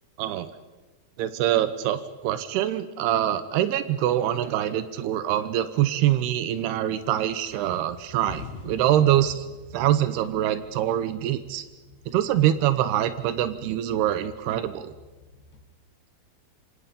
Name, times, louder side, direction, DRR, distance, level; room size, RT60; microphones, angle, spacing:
voice 1, 0.2-0.5 1.2-9.5 9.7-11.6 12.1-14.9, right 12 dB, 90° right, 12 dB, 3.0 m, -24 dB
sound 1, 4.4-5.1 5.5-6.6 7.0-15.6, left 5 dB, 55° left, 3.2 m, -48 dB
26.5 x 26.0 x 5.3 m, 1.2 s
omnidirectional pair, 4.5 m